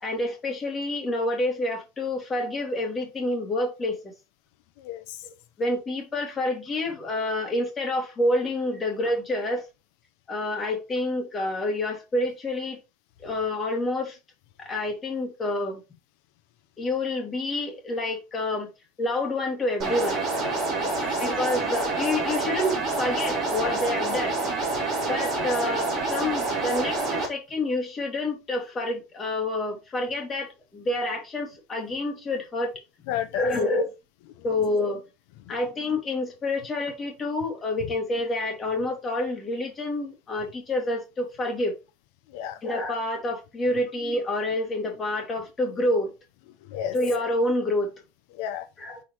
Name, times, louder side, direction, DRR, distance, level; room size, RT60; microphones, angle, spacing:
voice 1, 0.0-4.0 5.6-9.7 10.3-12.8 13.2-14.2 14.6-15.8 16.8-18.7 19.0-20.2 21.2-24.4 25.0-32.7 33.3-33.9 34.4-35.0 35.5-41.7 42.6-46.1 46.9-47.9 48.8-49.0, left 2 dB, 20° left, 2.3 m, -28 dB
voice 2, 4.8-5.2 20.7-21.2 33.1-33.4 42.3-42.6 46.7-46.9 48.3-48.7, left 10 dB, 70° left, 0.7 m, -32 dB
sound 1, 19.8-27.3, right 3 dB, 35° right, 3.2 m, -27 dB
10.0 x 4.0 x 3.0 m
cardioid pair, 160°, 0 cm